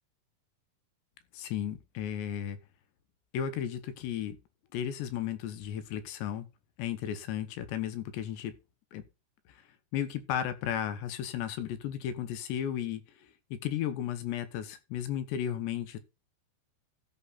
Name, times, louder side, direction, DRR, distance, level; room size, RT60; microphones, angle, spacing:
voice 1, 1.3-2.6 3.3-4.4 4.7-6.5 6.8-8.5 8.9-9.0 9.9-16.0, left 10 dB, 80° left, 3.4 m, -34 dB
13.5 x 6.0 x 4.1 m
omnidirectional pair, 5.0 m